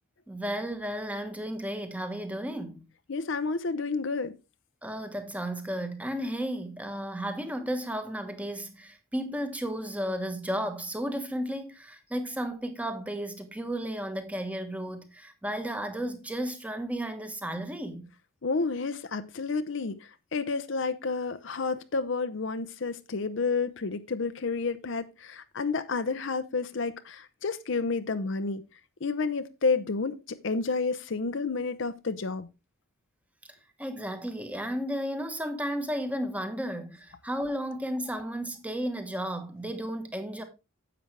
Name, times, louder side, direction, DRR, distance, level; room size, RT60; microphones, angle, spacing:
voice 1, 0.3-2.8 4.8-18.1 33.8-40.4, equal, 5° right, 1.2 m, -33 dB
voice 2, 3.1-4.3 18.4-20.0 20.3-28.6 29.0-32.5, left 4 dB, 60° left, 0.7 m, -30 dB
10.0 x 7.8 x 3.3 m
head